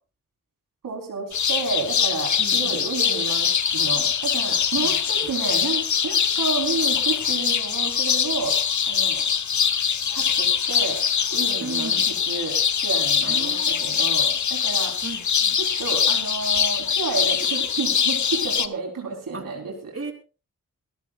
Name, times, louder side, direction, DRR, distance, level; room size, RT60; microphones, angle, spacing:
voice 1, 0.8-8.6 8.9-9.2 10.1-11.0 11.3-12.6 12.8-14.9 15.6-20.0, right 4 dB, 85° right, 1 dB, 3.8 m, -31 dB
sound 1, 1.3-18.7, left 7 dB, 60° left, 0.9 m, -23 dB
voice 2, 2.4-2.9 4.8-4.9 11.6-12.1 13.2-13.9 15.0-15.6 19.3-19.4 19.9-20.1, right 3 dB, 45° right, 4 dB, 3.3 m, -35 dB
23.5 x 14.0 x 2.4 m, 0.34 s
cardioid pair, 50°, 32 cm